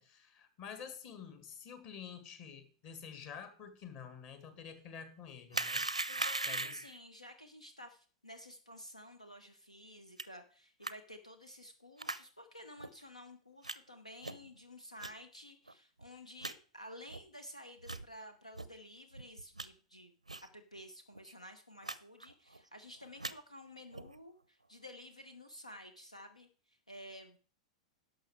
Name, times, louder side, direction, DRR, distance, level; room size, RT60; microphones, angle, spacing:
voice 1, 0.0-5.9 6.5-6.8, left 7 dB, 40° left, 9 dB, 1.9 m, -49 dB
sound 1, 5.5-7.0 10.2-10.3 10.8-10.9 12.0-12.2 12.8-12.9 13.6-13.8 14.2-14.5 15.0-15.1 15.7-15.8 16.0-16.1 16.4-16.5 17.1-17.2 17.8-18.0 18.5-18.7 19.1-19.7 20.3-20.5 20.8-20.9 21.1-21.3 21.8-22.0 22.2-22.6 23.0-23.3 23.9-24.2, right 2 dB, 85° right, 0.5 m, -39 dB
voice 2, 6.1-20.1 20.5-27.4, left 1 dB, 85° left, 8 dB, 1.1 m, -52 dB
11.5 x 6.5 x 4.8 m, 0.41 s
figure-of-eight pair, 95°, 3 cm